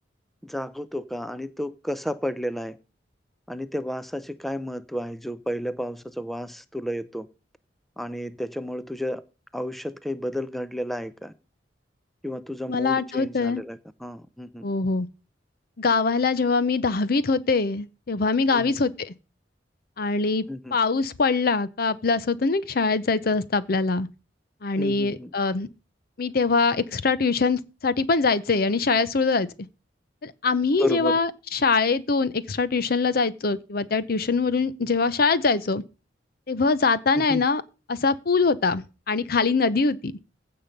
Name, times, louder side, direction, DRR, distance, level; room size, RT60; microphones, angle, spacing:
voice 1, 0.4-2.8 3.5-7.3 8.0-9.2 9.5-11.3 12.2-14.7 18.5-18.8 20.5-20.8 24.8-25.3 30.8-31.2 37.2-37.4, left 1 dB, ahead, 0.5 m, -32 dB
voice 2, 12.7-13.6 14.6-15.1 15.8-19.1 20.0-20.4 20.7-24.1 24.6-25.7 26.2-29.5 30.2-35.8 36.5-37.6 37.9-40.2, left 4 dB, 55° left, 0.7 m, -23 dB
15.5 x 5.7 x 5.2 m
head